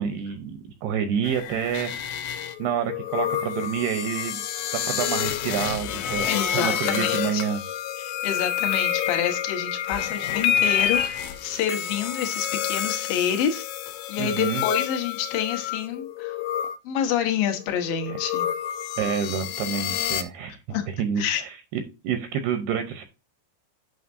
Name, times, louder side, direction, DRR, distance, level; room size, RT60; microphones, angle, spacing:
voice 1, 0.0-4.4 4.9-7.6 14.2-14.6 18.1-18.2 19.0-23.0, right 8 dB, 80° right, 2.4 m, -28 dB
sound 1, 1.2-16.8 17.6-20.2, left 10 dB, 85° left, 3.2 m, -28 dB
voice 2, 6.3-7.4 8.0-13.7 14.1-16.4 16.8-18.5 20.7-20.9 21.2-21.4, left 9 dB, 70° left, 2.3 m, -27 dB
9.4 x 5.7 x 2.6 m
omnidirectional pair, 5.3 m